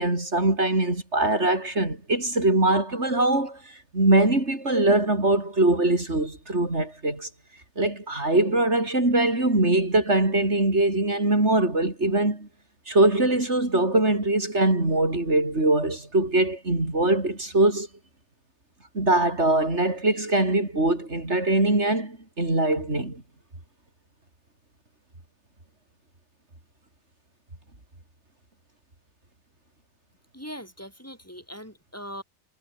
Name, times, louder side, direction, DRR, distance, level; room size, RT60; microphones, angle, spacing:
voice 1, 0.0-3.6 3.9-7.3 7.8-12.5 12.9-17.9 18.9-23.2, right 2 dB, 70° right, 5.5 m, -22 dB
voice 2, 30.3-32.2, equal, 10° left, 7.2 m, -40 dB
omnidirectional pair, 1.2 m